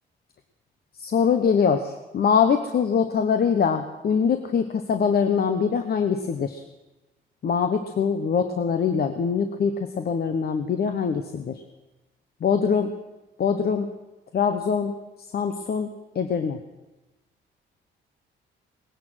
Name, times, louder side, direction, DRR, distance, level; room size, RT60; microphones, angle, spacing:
voice 1, 1.0-6.6 7.4-11.6 12.4-12.9 13.4-13.9 14.3-14.9 15.3-16.6, left 6 dB, 50° left, 7 dB, 1.0 m, -23 dB
19.0 x 10.5 x 6.3 m, 1.1 s
cardioid pair, 90°, 20 cm